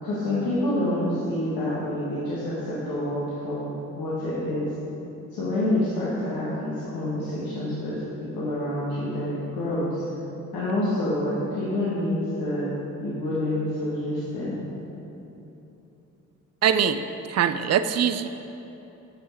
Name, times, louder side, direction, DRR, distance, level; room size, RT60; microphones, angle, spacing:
voice 1, 0.0-3.7 4.0-4.7 5.3-10.0 10.5-14.6, left 1 dB, 65° left, -8 dB, 1.6 m, -27 dB
voice 2, 16.6-17.0 17.3-18.3, right 8 dB, 45° right, 11 dB, 0.5 m, -22 dB
8.7 x 5.5 x 4.5 m, 3.0 s
hypercardioid pair, 40°, 38 cm